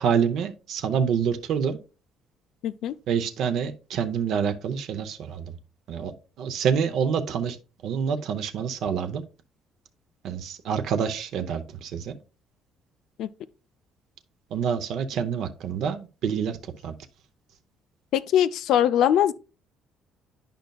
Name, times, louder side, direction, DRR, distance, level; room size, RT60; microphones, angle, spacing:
voice 1, 0.0-1.8 3.1-5.5 5.9-7.6 7.8-9.2 10.2-12.2 14.5-16.6 16.8-16.9, right 7 dB, 55° right, 0.6 m, -27 dB
voice 2, 2.6-2.9 13.2-13.3 18.1-19.3, left 10 dB, 60° left, 0.3 m, -21 dB
10.0 x 5.2 x 2.3 m
cardioid pair, 170°, 0 cm